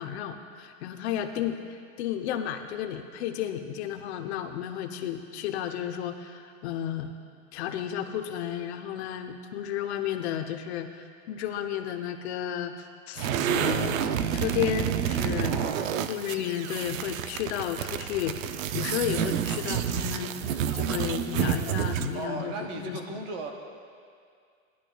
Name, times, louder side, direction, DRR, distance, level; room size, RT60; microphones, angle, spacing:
voice 1, 0.0-1.6 2.0-7.1 7.5-12.7 13.1-14.0 14.3-15.5 16.1-20.3 20.7-23.0, left 10 dB, 55° left, 7 dB, 0.8 m, -32 dB
sound 1, 13.2-22.2, right 9 dB, 85° right, 0.6 m, -29 dB
voice 2, 15.3-16.0 22.1-23.5, right 3 dB, 15° right, 3 dB, 0.3 m, -36 dB
16.0 x 11.0 x 2.3 m, 2.2 s
supercardioid pair, 150°, 39 cm